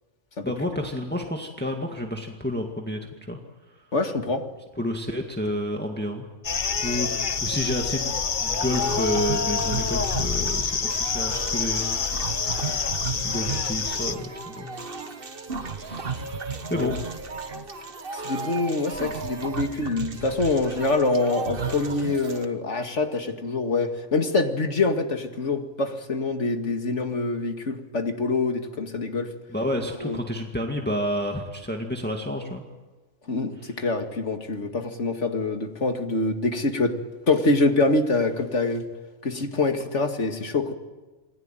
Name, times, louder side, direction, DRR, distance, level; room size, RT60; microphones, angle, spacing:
voice 1, 0.4-3.0 3.3-3.4 4.8-6.2 6.8-8.2 8.4-12.9 13.2-14.7 15.8-17.0 29.5-32.6 33.6-33.7, left 1 dB, 10° left, 2 dB, 2.0 m, -30 dB
voice 2, 3.9-4.4 16.7-17.0 18.1-29.3 30.0-30.2 33.3-37.0 37.3-38.9 39.2-40.7, left 3 dB, 65° left, 5 dB, 2.4 m, -25 dB
sound 1, 6.4-14.1, left 5 dB, 40° left, 1.0 m, -27 dB
sound 2, 8.7-22.4, right 4 dB, 45° right, 1.6 m, -34 dB
28.5 x 21.0 x 9.1 m, 1.2 s
omnidirectional pair, 1.3 m